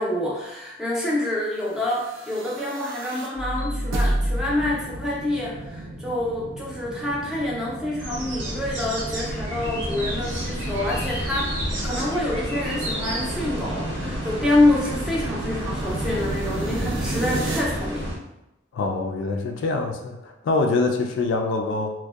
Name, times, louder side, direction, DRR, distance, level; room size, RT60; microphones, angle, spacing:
voice 1, 0.0-11.5 11.8-18.1, left 1 dB, 5° right, -6 dB, 0.4 m, -26 dB
sound 1, 1.8-17.6, right 1 dB, 85° right, 0.4 m, -32 dB
sound 2, 8.0-18.1, equal, 65° right, 1.0 m, -31 dB
voice 2, 18.7-21.9, left 3 dB, 70° left, 3 dB, 0.3 m, -24 dB
2.6 x 2.1 x 2.2 m, 0.91 s
head